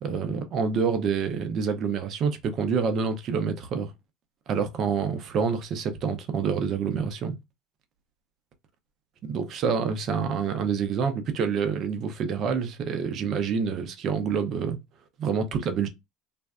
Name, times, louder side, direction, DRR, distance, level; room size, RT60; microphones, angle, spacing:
voice 1, 0.0-3.9 4.5-7.4 9.2-14.8 15.2-15.9, right 6 dB, 50° right, 0.6 m, -27 dB
2.5 x 2.2 x 2.2 m
hypercardioid pair, 85°, 0 cm